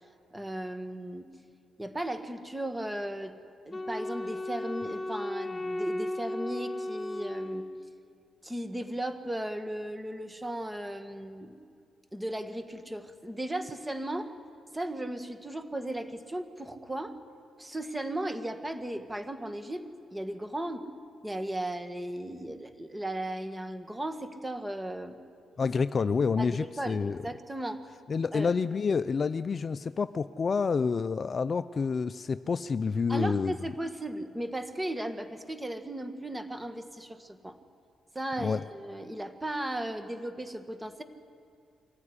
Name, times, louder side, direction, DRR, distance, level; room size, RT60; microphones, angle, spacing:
voice 1, 0.3-1.3 1.8-3.4 3.6-7.7 8.4-11.7 12.1-14.3 14.7-17.2 17.6-20.9 21.2-25.2 26.4-27.8 28.3-28.5 33.1-37.6 38.1-41.0, right 1 dB, 10° right, 8 dB, 1.8 m, -36 dB
Wind instrument woodwind instrument, 3.7-8.1, left 1 dB, 25° left, 1.3 m, -35 dB
voice 2, 25.6-27.2 28.1-33.6 38.4-38.6, left 5 dB, 45° left, 13 dB, 0.5 m, -28 dB
24.0 x 14.5 x 9.9 m, 2.2 s
cardioid pair, 85°, 0 cm